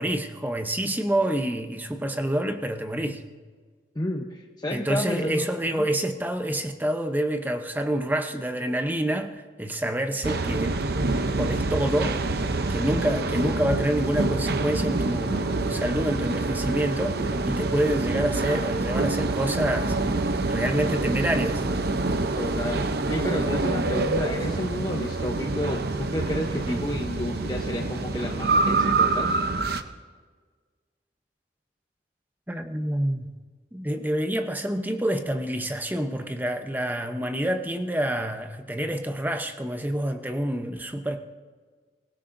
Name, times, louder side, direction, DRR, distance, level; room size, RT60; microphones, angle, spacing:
voice 1, 0.0-3.2 4.7-10.8 11.4-20.0 20.5-21.7 26.7-26.9 32.5-33.3 33.7-41.2, right 1 dB, 10° right, 6 dB, 0.7 m, -27 dB
voice 2, 3.9-5.5 5.7-5.9 22.3-29.4, left 1 dB, 20° left, 1 dB, 0.8 m, -31 dB
sound 1, 10.2-29.8, right 3 dB, 55° right, 0.7 m, -26 dB
24.0 x 16.5 x 2.6 m, 1.5 s
head